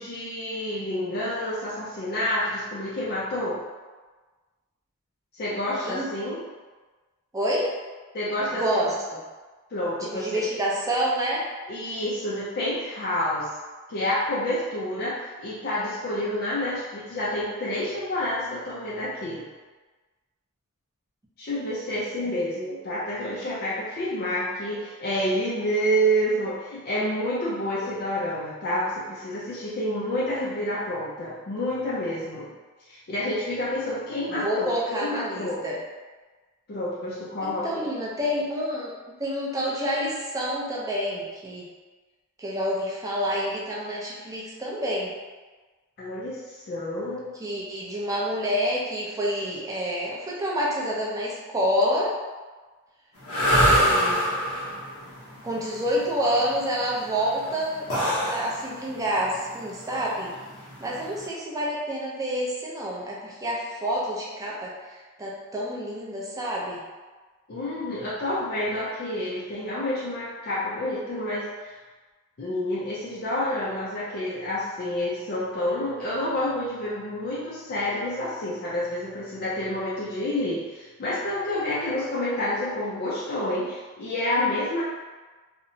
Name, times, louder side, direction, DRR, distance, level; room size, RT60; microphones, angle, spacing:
voice 1, 0.0-3.6 5.3-6.4 8.1-8.6 9.7-10.4 11.7-13.5 13.9-15.1 15.4-19.5 21.4-32.5 32.9-35.6 36.7-37.8 46.0-47.3 67.5-71.8 72.4-84.8, left 1 dB, 45° left, -8 dB, 0.4 m, -28 dB
voice 2, 7.3-7.7 8.5-8.9 10.0-11.4 22.2-22.3 34.4-35.8 37.4-38.9 39.2-41.7 42.4-45.1 47.4-52.1 53.5-54.2 55.4-60.3 60.8-64.7 65.2-66.8, equal, 15° right, -4 dB, 0.4 m, -28 dB
sound 1, 53.2-61.3, equal, 85° left, 0.7 m, -25 dB
2.8 x 2.1 x 2.6 m, 1.3 s
head